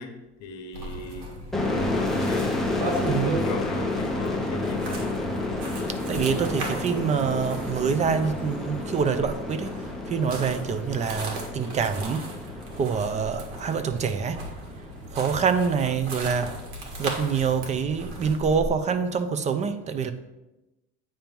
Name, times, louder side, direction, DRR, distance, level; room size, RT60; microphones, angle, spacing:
voice 1, 0.0-1.3 1.9-2.6 3.1-5.1 15.8-16.2, left 5 dB, 60° left, 1.0 m, -39 dB
sound 1, 0.7-18.7, right 1 dB, 85° right, 1.7 m, -37 dB
sound 2, 1.5-15.0, left 2 dB, ahead, 0.7 m, -30 dB
voice 2, 3.0-3.4 6.1-14.4 15.1-16.5 17.0-20.1, right 6 dB, 25° right, 0.4 m, -26 dB
8.7 x 3.0 x 5.2 m
cardioid pair, 140°, 30 cm